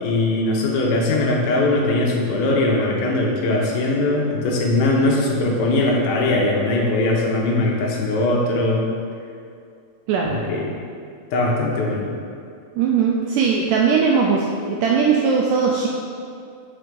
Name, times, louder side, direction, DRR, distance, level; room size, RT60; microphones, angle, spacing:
voice 1, 0.0-8.9 10.2-10.6 11.3-12.2, left 2 dB, 80° left, -1 dB, 2.7 m, -20 dB
voice 2, 10.1-10.4 12.8-15.9, right 5 dB, 80° right, -1 dB, 1.9 m, -19 dB
6.1 x 4.5 x 5.1 m, 2.3 s
omnidirectional pair, 4.2 m